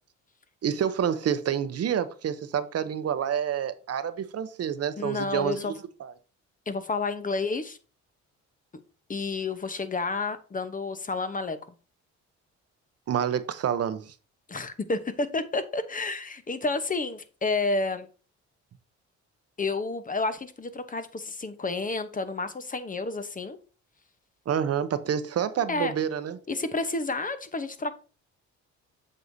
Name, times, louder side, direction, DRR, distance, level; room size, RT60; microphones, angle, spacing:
voice 1, 0.6-5.7 6.0-6.1 13.1-14.1 24.5-26.4, right 8 dB, 55° right, 0.8 m, -28 dB
voice 2, 5.0-5.7 6.7-7.8 9.1-11.6 14.5-18.1 19.6-23.6 25.7-25.9 26.5-27.9, left 3 dB, 25° left, 0.9 m, -30 dB
7.9 x 6.5 x 2.7 m
cardioid pair, 90°, 30 cm